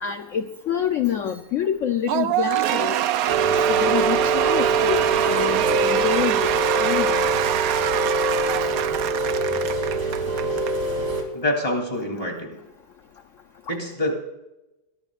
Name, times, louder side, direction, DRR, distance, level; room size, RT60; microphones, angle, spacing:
voice 1, 0.0-3.0 3.5-6.5 6.8-7.3, left 8 dB, 80° left, 8 dB, 0.7 m, -27 dB
Cheering / Applause / Crowd, 2.1-10.7, right 11 dB, 85° right, 0.7 m, -24 dB
Rain, 3.3-11.2, right 3 dB, 65° right, 3.7 m, -24 dB
voice 2, 11.3-12.6 13.7-14.1, left 1 dB, 15° left, 2 dB, 3.3 m, -26 dB
21.5 x 18.5 x 2.5 m, 0.95 s
omnidirectional pair, 2.2 m